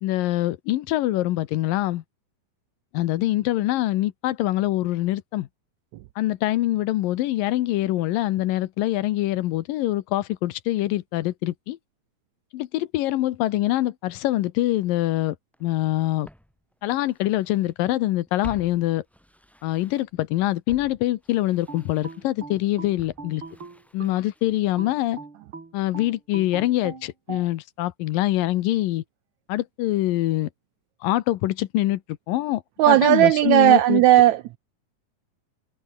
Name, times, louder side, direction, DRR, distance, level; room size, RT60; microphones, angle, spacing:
voice 1, 0.0-2.0 2.9-5.5 6.2-11.8 12.5-15.3 15.6-16.3 16.8-19.0 19.6-23.4 23.9-25.2 25.7-29.0 29.5-30.5 31.0-32.0 32.3-34.0, left 15 dB, 80° left, 2.6 m, -24 dB
Walk footsteps, 15.5-15.6 16.2-17.7 18.0-20.3 20.7-24.7 25.0-25.1, equal, ahead, 1.6 m, -48 dB
sound 1, 21.7-24.3 24.8-27.5, right 4 dB, 35° right, 4.9 m, -40 dB
voice 2, 32.8-34.6, right 14 dB, 80° right, 1.6 m, -16 dB
omnidirectional pair, 4.0 m